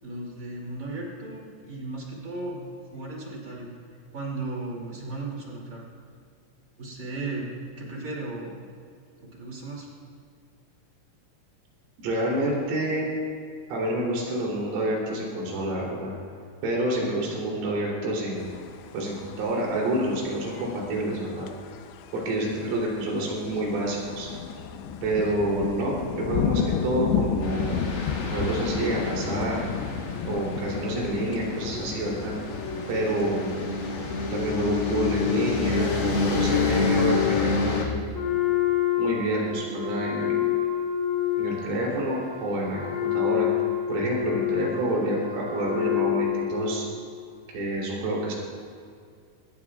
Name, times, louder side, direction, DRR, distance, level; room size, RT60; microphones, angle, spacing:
voice 1, 0.0-5.8 6.8-7.5 7.8-8.6 9.2-9.9, right 2 dB, 30° right, -3 dB, 1.6 m, -36 dB
voice 2, 12.0-13.1 13.7-16.1 16.6-18.6 18.9-21.5 22.1-24.3 25.0-28.0 28.3-29.7 30.2-32.3 32.9-33.7 34.3-38.0 39.0-40.4 41.4-43.5 43.9-46.9 47.5-48.3, right 1 dB, 75° right, -4 dB, 5.9 m, -28 dB
sound 1, 18.4-37.5, left 7 dB, 85° left, 2.7 m, -34 dB
sound 2, 27.4-37.8, left 4 dB, 60° left, 3.7 m, -28 dB
Wind instrument woodwind instrument, 38.1-46.9, left 11 dB, 30° left, 3.5 m, -28 dB
22.5 x 18.5 x 2.4 m, 2.2 s
omnidirectional pair, 5.9 m